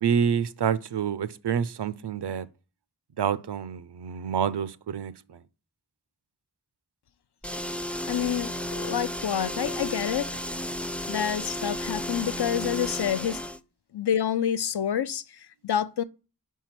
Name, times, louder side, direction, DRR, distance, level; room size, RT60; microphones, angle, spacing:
voice 1, 0.0-2.5 3.2-5.1, right 7 dB, 85° right, 0.5 m, -27 dB
sound 1, 7.4-13.6, left 1 dB, 5° left, 0.3 m, -33 dB
voice 2, 8.1-10.3 11.1-13.4 13.9-16.0, left 9 dB, 75° left, 0.5 m, -28 dB
5.3 x 4.6 x 5.8 m
wide cardioid pair, 40°, 39 cm